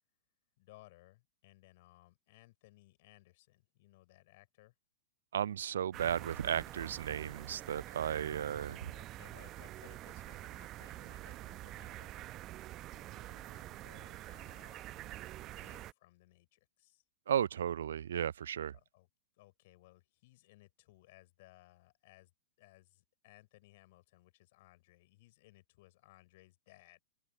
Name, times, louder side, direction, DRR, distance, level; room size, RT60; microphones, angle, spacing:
voice 1, 0.6-4.7 8.0-12.3 12.9-15.2 15.4-17.0 18.7-19.1 19.4-22.3 22.6-27.0, left 19 dB, 50° left, 6.1 m, -62 dB
voice 2, 5.3-8.8 17.3-18.7, right 9 dB, 65° right, 0.4 m, -34 dB
sound 1, 5.9-15.9, right 15 dB, 35° right, 0.8 m, -47 dB
open air
figure-of-eight pair, 95°, 0 cm